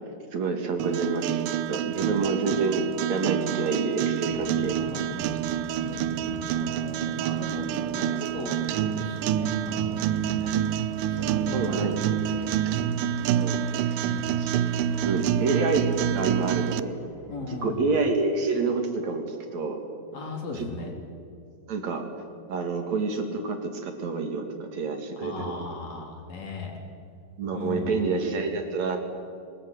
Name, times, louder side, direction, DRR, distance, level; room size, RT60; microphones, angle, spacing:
voice 1, 0.3-4.8 10.4-10.6 11.1-12.0 13.3-14.6 15.0-17.0 17.5-19.8 20.5-20.9 21.7-22.1 22.5-25.5 27.4-29.0, right 4 dB, 55° right, 4 dB, 3.3 m, -28 dB
sound 1, 0.8-16.8, right 10 dB, 75° right, 2.2 m, -27 dB
Musical instrument, 4.3-18.0, equal, 80° left, 6.0 m, -43 dB
voice 2, 4.3-5.4 5.7-10.5 11.0-12.6 14.0-14.4 17.3-17.8 20.1-20.9 25.2-26.7 27.5-28.0, left 3 dB, 50° left, 2 dB, 4.6 m, -38 dB
22.5 x 21.0 x 9.4 m, 2.4 s
omnidirectional pair, 4.0 m